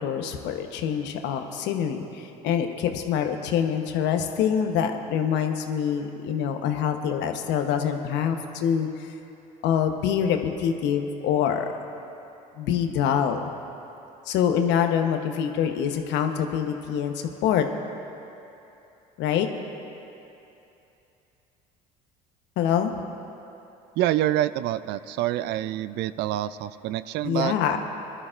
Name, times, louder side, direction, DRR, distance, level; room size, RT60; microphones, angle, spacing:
voice 1, 0.0-9.1 9.6-11.7 12.6-13.5 14.3-17.7 19.2-19.5 22.6-22.9 27.2-27.8, left 8 dB, 70° left, 6 dB, 1.0 m, -25 dB
voice 2, 24.0-27.5, right 13 dB, 65° right, 15 dB, 0.4 m, -26 dB
21.0 x 12.5 x 2.5 m, 2.9 s
hypercardioid pair, 75°, 19 cm